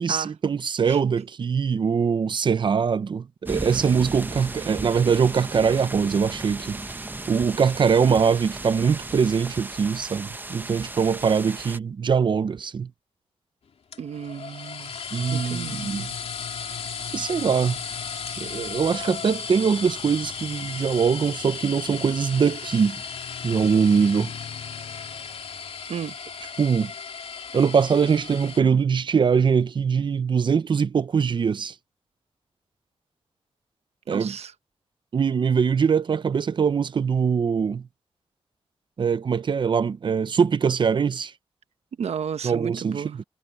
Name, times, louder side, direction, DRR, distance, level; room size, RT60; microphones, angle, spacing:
voice 1, 0.0-6.8 7.3-12.9 15.1-16.1 17.1-17.8 18.4-23.0 23.4-24.3 26.6-26.9 27.5-31.7 34.1-34.4 35.1-37.9 39.0-41.3 42.4-43.2, right 6 dB, 50° right, 0.6 m, -22 dB
sound 1, 3.4-11.8, right 2 dB, 20° right, 0.8 m, -35 dB
sound 2, 13.9-28.6, left 6 dB, 75° left, 2.8 m, -35 dB
voice 2, 14.0-14.9 15.3-15.8 25.9-26.2 34.1-34.5 42.0-43.2, right 8 dB, 85° right, 1.0 m, -33 dB
wide cardioid pair, 150°, 11 cm